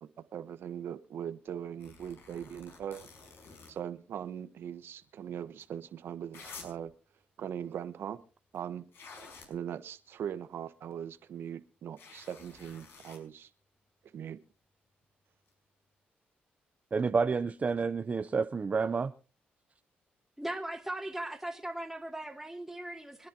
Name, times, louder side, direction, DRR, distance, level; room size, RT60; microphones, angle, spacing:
voice 1, 0.0-3.1 3.7-6.9 7.4-8.2 8.5-8.9 9.5-13.5 14.1-14.4, right 9 dB, 75° right, 1.2 m, -40 dB
sound 1, 1.8-3.7 5.6-5.7 6.3-6.8 8.5-8.6 8.9-9.5 12.0-13.2 15.5-15.6, left 4 dB, 70° left, 5.5 m, -51 dB
voice 2, 16.9-19.1, right 5 dB, 40° right, 0.7 m, -29 dB
voice 3, 20.4-23.3, right 1 dB, 5° right, 2.6 m, -38 dB
25.5 x 10.5 x 2.9 m
cardioid pair, 70°, 4 cm